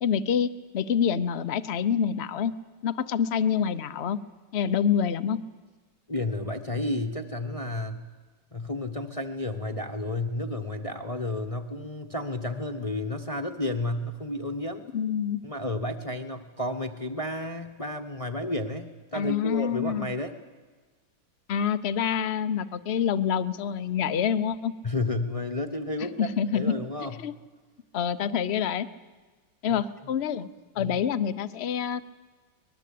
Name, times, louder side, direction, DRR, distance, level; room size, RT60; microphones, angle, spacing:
voice 1, 0.0-2.5 2.8-4.2 4.5-5.4 14.9-15.4 19.1-20.1 21.5-24.7 26.2-26.8 27.2-27.3 27.9-28.9 29.6-30.5 30.7-32.1, left 8 dB, 55° left, 14 dB, 0.7 m, -26 dB
voice 2, 6.1-8.1 8.5-14.8 15.4-20.3 24.8-27.2 29.7-29.8 30.8-31.0, left 2 dB, 25° left, 6 dB, 0.9 m, -31 dB
24.5 x 20.5 x 8.5 m, 1.3 s
omnidirectional pair, 2.1 m